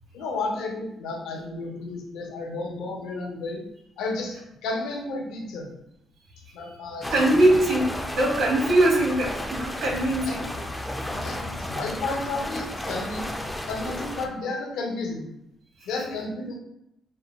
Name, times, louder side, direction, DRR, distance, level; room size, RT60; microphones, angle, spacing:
voice 1, 0.1-3.7 4.0-5.7 6.5-7.1 7.5-7.6 10.3-10.4 11.0-13.3 13.6-15.3 15.9-16.5, left 3 dB, 85° left, 1 dB, 0.8 m, -32 dB
sound 1, 7.0-14.3, left 1 dB, 10° left, 0.5 m, -33 dB
voice 2, 7.1-7.8 8.1-10.5 15.8-15.9, right 1 dB, 70° right, -1 dB, 1.3 m, -21 dB
5.5 x 2.9 x 2.3 m, 0.82 s
cardioid pair, 85°, 0 cm